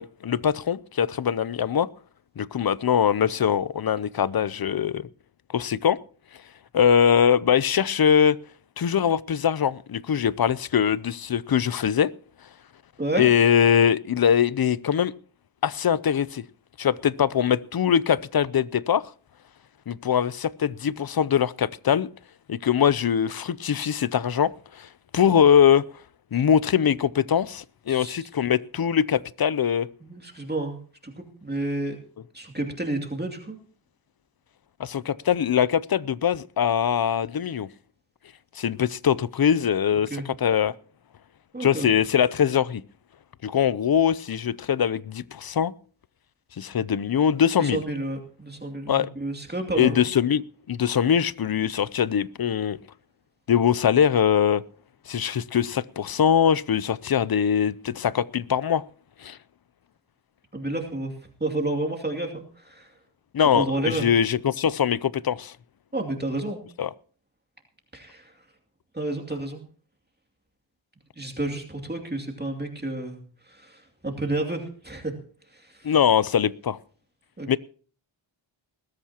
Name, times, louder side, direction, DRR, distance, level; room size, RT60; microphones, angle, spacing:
voice 1, 0.0-1.9 2.4-5.1 5.5-6.0 6.7-8.4 8.8-12.1 13.2-15.1 15.6-16.4 16.8-19.0 19.9-22.1 22.5-24.9 25.1-25.8 26.3-29.9 34.8-37.7 38.6-40.1 40.4-40.7 41.6-42.8 43.4-45.7 46.6-47.8 48.9-49.1 49.8-52.8 53.5-54.6 55.1-58.8 59.2-59.4 63.3-65.5 66.8-66.9 75.8-76.8 77.5-77.6, left 8 dB, 50° left, 0.6 m, -22 dB
voice 2, 27.9-28.3 30.0-30.8 31.0-32.0 32.3-33.6 40.1-40.3 41.5-41.9 47.6-50.0 60.5-62.9 63.5-64.1 65.9-66.6 67.9-68.3 68.9-69.6 71.2-73.2 73.5-75.1 75.5-75.9 77.4-77.6, right 2 dB, 20° right, 2.6 m, -30 dB
20.5 x 13.0 x 2.9 m
wide cardioid pair, 70°, 48 cm